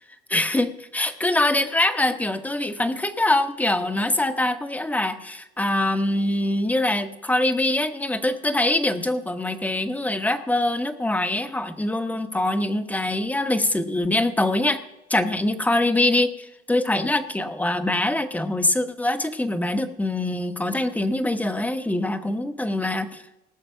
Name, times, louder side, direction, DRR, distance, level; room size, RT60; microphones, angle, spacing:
voice 1, 0.3-14.8 15.1-23.4, left 1 dB, 10° left, 9 dB, 1.0 m, -24 dB
19.0 x 6.6 x 5.7 m, 0.91 s
cardioid pair, 110°, 17 cm